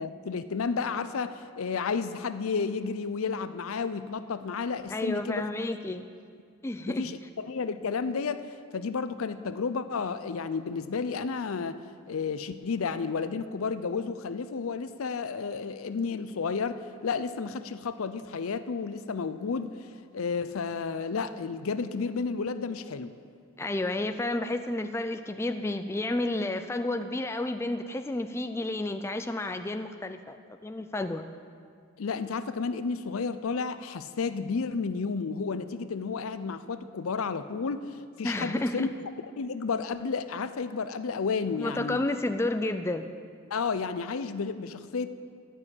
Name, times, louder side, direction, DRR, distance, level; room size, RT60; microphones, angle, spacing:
voice 1, 0.0-5.5 6.9-11.8 12.1-19.8 20.1-23.1 32.0-38.9 39.4-42.0 43.5-45.1, left 5 dB, 75° left, 12 dB, 0.5 m, -32 dB
voice 2, 4.9-6.1 6.6-7.1 23.6-30.4 30.6-31.3 38.2-38.9 41.5-43.1, left 2 dB, 10° left, 8 dB, 0.3 m, -31 dB
12.0 x 6.3 x 8.8 m, 2.2 s
head